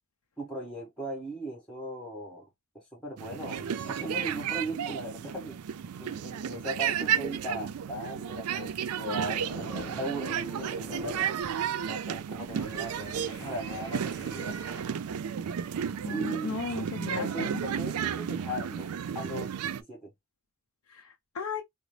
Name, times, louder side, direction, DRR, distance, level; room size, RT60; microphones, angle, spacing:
voice 1, 0.4-2.5 2.7-5.6 6.0-11.4 11.8-14.6 16.1-16.6 17.2-20.1, right 1 dB, 5° left, 1.3 m, -38 dB
sound 1, 3.2-19.8, right 8 dB, 90° right, 0.4 m, -33 dB
sound 2, 8.5-8.7 9.0-11.5 11.8-12.0 12.5-14.8, equal, 15° right, 2.1 m, -46 dB
voice 2, 16.0-17.5 20.9-21.6, left 4 dB, 85° left, 0.6 m, -36 dB
3.8 x 2.0 x 3.2 m
head